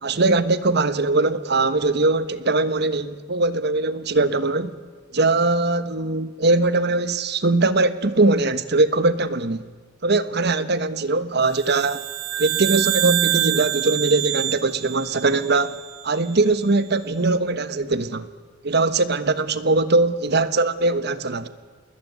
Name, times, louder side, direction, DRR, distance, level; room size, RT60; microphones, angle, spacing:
voice 1, 0.0-4.7 5.1-9.7 10.0-12.0 12.4-15.8 16.0-18.3 18.6-21.5, right 3 dB, 55° right, 1.3 m, -21 dB
sound 1, 11.6-16.1, right 14 dB, 75° right, 1.0 m, -26 dB
28.5 x 20.5 x 9.5 m
head